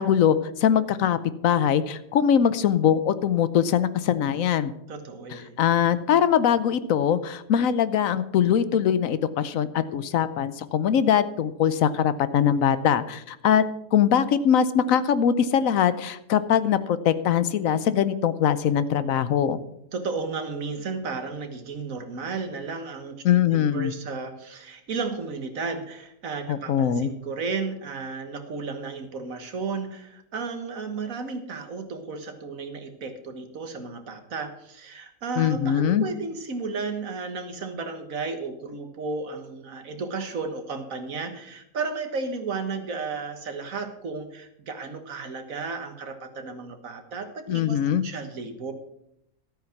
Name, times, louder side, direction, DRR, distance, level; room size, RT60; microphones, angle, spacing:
voice 1, 0.0-4.7 5.3-13.6 13.9-19.6 23.2-23.9 26.5-27.1 35.4-36.0 47.5-48.0, left 9 dB, 70° left, 14 dB, 1.1 m, -22 dB
voice 2, 4.9-5.6 19.9-48.7, right 4 dB, 70° right, 7 dB, 1.8 m, -33 dB
13.0 x 8.9 x 5.9 m, 0.78 s
omnidirectional pair, 1.5 m